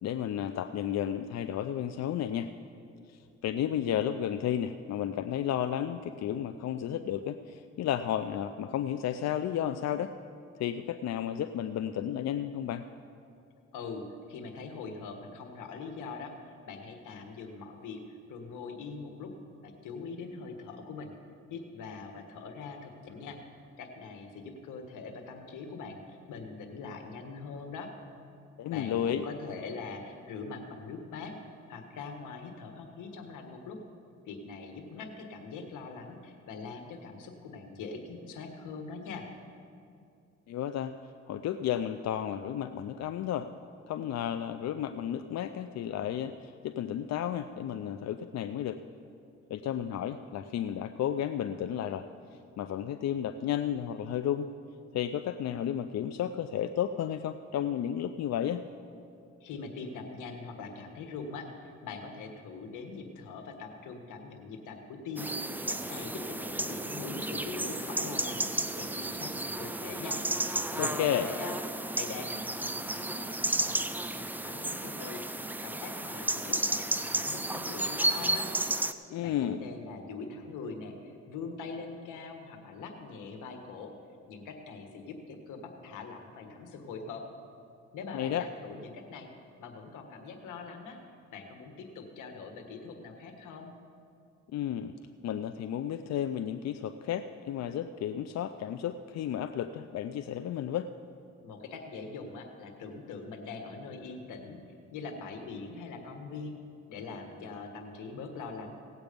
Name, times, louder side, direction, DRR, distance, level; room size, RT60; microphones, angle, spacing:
voice 1, 0.0-2.5 3.1-10.1 10.6-12.8 28.6-29.2 40.5-40.9 41.3-43.5 43.9-48.8 49.5-52.1 52.6-54.5 54.9-58.6 70.8-71.3 79.1-79.6 88.1-88.5 94.5-94.9 95.2-100.9, left 10 dB, 60° left, 9 dB, 0.5 m, -32 dB
voice 2, 13.7-19.3 19.6-21.1 21.5-23.4 23.8-27.9 28.7-33.8 34.3-39.3 59.4-65.3 65.7-70.2 70.7-73.8 74.1-75.2 75.6-78.5 79.2-83.9 84.3-87.3 87.9-89.3 89.6-91.0 91.3-93.7 101.4-104.6 104.9-106.6 106.9-108.7, left 4 dB, 85° left, 5 dB, 1.6 m, -42 dB
sound 1, 65.2-78.9, right 1 dB, 5° right, 0.5 m, -33 dB
17.5 x 8.1 x 5.2 m, 2.5 s
cardioid pair, 90°, 30 cm